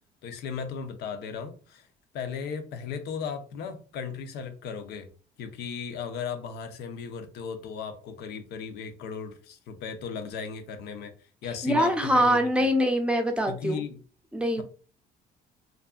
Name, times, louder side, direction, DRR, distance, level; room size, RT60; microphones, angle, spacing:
voice 1, 0.2-1.9 2.1-5.1 5.4-11.1 11.4-12.7 13.5-14.0, left 6 dB, 80° left, 7 dB, 0.6 m, -36 dB
voice 2, 11.6-13.8 14.3-14.6, equal, 5° right, 5 dB, 0.5 m, -24 dB
2.6 x 2.5 x 2.3 m, 0.37 s
cardioid pair, 110°, 17 cm